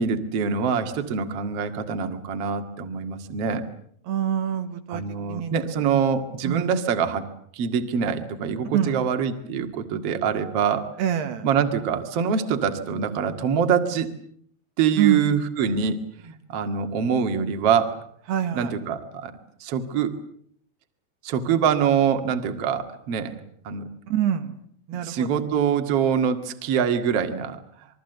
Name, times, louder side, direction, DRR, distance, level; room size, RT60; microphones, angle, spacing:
voice 1, 0.0-3.6 4.9-7.3 7.5-10.9 11.4-14.1 14.8-18.0 18.5-19.3 19.6-20.1 21.2-23.4 23.6-23.8 24.9-27.9, right 7 dB, 45° right, 6 dB, 2.4 m, -24 dB
voice 2, 4.1-5.0 5.3-5.5 6.4-6.7 8.7-9.0 11.0-11.5 15.0-15.2 18.3-18.7 24.1-24.5 24.9-25.4, right 9 dB, 80° right, 8 dB, 3.6 m, -25 dB
27.0 x 22.5 x 8.0 m, 0.65 s
omnidirectional pair, 4.7 m